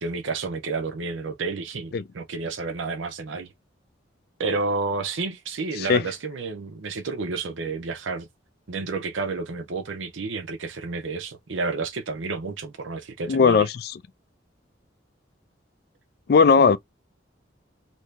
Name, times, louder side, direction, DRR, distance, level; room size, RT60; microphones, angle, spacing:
voice 1, 0.0-3.5 4.4-8.3 8.7-13.7, right 3 dB, 90° right, 0.7 m, -30 dB
voice 2, 13.3-13.9 16.3-16.8, left 5 dB, 55° left, 0.3 m, -18 dB
2.9 x 2.7 x 3.3 m
head